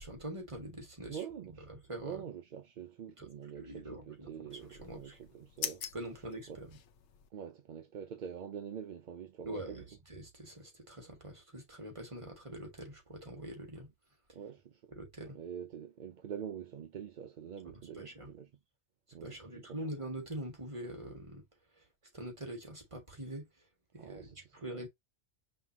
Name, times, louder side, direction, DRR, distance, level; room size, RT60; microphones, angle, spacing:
voice 1, 0.0-1.2 1.7-2.2 3.2-3.3 3.6-4.3 4.7-5.2 5.9-6.7 9.5-9.8 10.1-13.9 15.0-15.4 18.0-18.3 19.2-21.4 21.8-21.9 22.1-23.5 23.9-24.3 24.6-24.9, right 1 dB, 30° right, 1.8 m, -44 dB
voice 2, 1.1-1.7 2.0-5.9 6.5-6.6 7.3-9.8 14.3-14.9 15.2-18.5 19.1-19.8 24.0-24.9, right 8 dB, 55° right, 0.6 m, -45 dB
sound 1, 4.5-7.3, left 9 dB, 85° left, 1.0 m, -44 dB
5.5 x 2.9 x 2.8 m
omnidirectional pair, 1.2 m